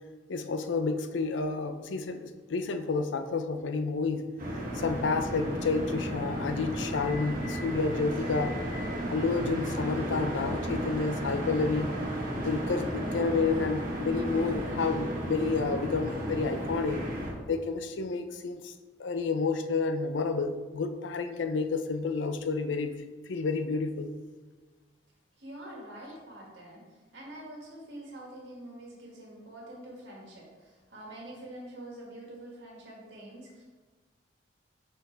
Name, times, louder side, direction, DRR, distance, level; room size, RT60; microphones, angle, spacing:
voice 1, 0.3-4.3 4.7-8.6 9.1-12.0 12.4-17.0 17.5-18.7 19.0-24.1, left 4 dB, 90° left, 7 dB, 0.5 m, -30 dB
sound 1, 4.4-17.3, equal, 50° right, 1.6 m, -34 dB
voice 2, 25.4-33.6, right 1 dB, 75° right, -4 dB, 1.9 m, -46 dB
5.8 x 5.3 x 3.3 m, 1.3 s
head